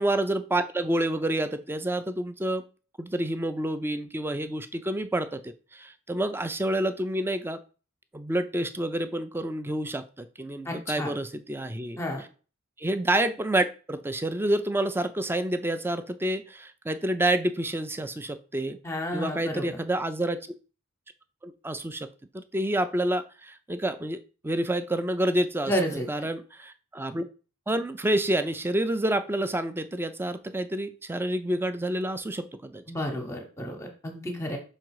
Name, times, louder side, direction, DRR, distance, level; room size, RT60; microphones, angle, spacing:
voice 1, 0.0-2.6 3.0-7.6 8.1-12.0 12.8-18.8 19.1-20.5 21.4-22.1 22.3-27.2 27.7-32.8, right 1 dB, 10° right, 11 dB, 0.4 m, -28 dB
voice 2, 10.6-11.1 12.0-12.2 18.8-19.8 25.6-26.1 32.9-34.6, equal, 15° left, 3 dB, 0.9 m, -31 dB
5.4 x 3.8 x 4.7 m, 0.36 s
head